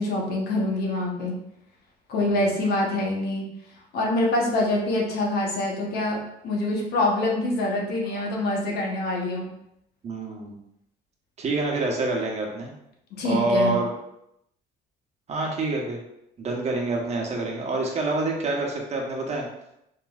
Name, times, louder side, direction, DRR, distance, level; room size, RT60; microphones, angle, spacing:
voice 1, 0.0-1.4 2.1-3.4 3.9-6.2 6.4-9.5 13.2-13.8, left 2 dB, 70° left, -1 dB, 1.0 m, -25 dB
voice 2, 2.2-2.5 8.1-8.2 10.0-10.5 11.4-12.7 13.2-13.9 15.3-16.0 16.4-19.5, right 2 dB, 40° right, 0 dB, 1.0 m, -27 dB
4.7 x 3.0 x 2.4 m, 0.80 s
cardioid pair, 110°, 17 cm